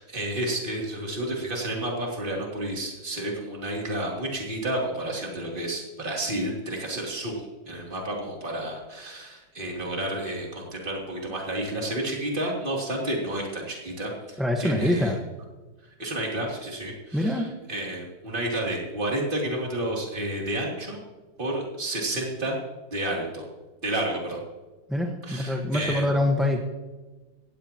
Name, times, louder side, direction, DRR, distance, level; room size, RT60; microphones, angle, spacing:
voice 1, 0.0-15.2 16.0-21.0 21.4-22.6 22.9-23.4 23.8-24.4 25.2-26.1, right 1 dB, 25° right, -2 dB, 3.2 m, -31 dB
voice 2, 14.4-15.2 17.1-17.5 24.9-26.6, left 1 dB, ahead, 1 dB, 1.0 m, -24 dB
18.0 x 15.5 x 3.0 m, 1.2 s
omnidirectional pair, 2.1 m